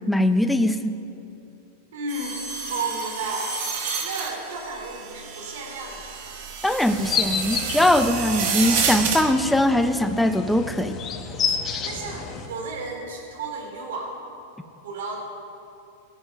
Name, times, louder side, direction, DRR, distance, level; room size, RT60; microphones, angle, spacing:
voice 1, 0.1-0.9 6.6-11.0, left 1 dB, 5° left, 8 dB, 0.6 m, -21 dB
voice 2, 1.9-2.4 2.7-3.5 4.0-6.2 11.8-14.1 14.8-15.2, right 3 dB, 80° right, 1 dB, 3.0 m, -33 dB
sound 1, 2.1-9.2, right 6 dB, 55° right, 1.9 m, -30 dB
sound 2, 6.9-12.5, left 6 dB, 25° left, 1.0 m, -30 dB
19.5 x 8.8 x 5.6 m, 2.7 s
supercardioid pair, 155°, 0 cm